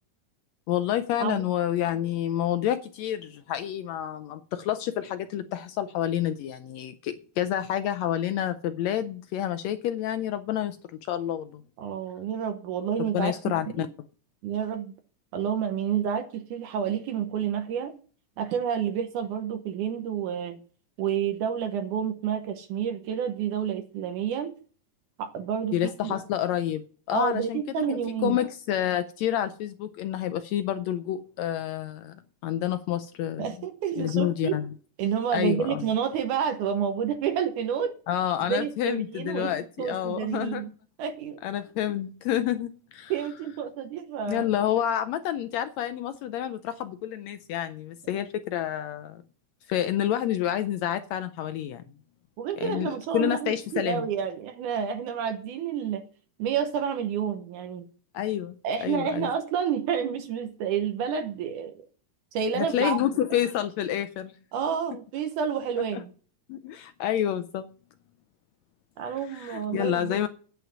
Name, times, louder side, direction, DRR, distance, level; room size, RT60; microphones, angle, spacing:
voice 1, 0.7-10.8 11.1-11.6 13.1-13.9 25.7-26.8 27.1-32.1 32.4-33.5 34.0-34.7 35.3-35.8 38.1-40.7 41.4-43.1 44.3-49.2 49.7-51.8 52.6-54.0 58.1-58.5 58.8-59.3 62.5-64.3 65.9-66.0 66.5-67.7 69.3-70.3, left 11 dB, 80° left, 1.6 m, -28 dB
voice 2, 11.8-13.9 14.4-14.9 15.3-17.9 18.4-20.6 21.0-24.6 25.2-26.2 27.1-28.4 33.4-34.6 35.0-38.0 38.5-40.7 41.0-41.4 43.1-44.5 52.4-56.0 56.4-57.9 58.6-61.8 62.3-63.0 64.5-66.1 69.0-70.2, right 8 dB, 75° right, 2.3 m, -29 dB
9.3 x 8.1 x 6.0 m
omnidirectional pair, 3.7 m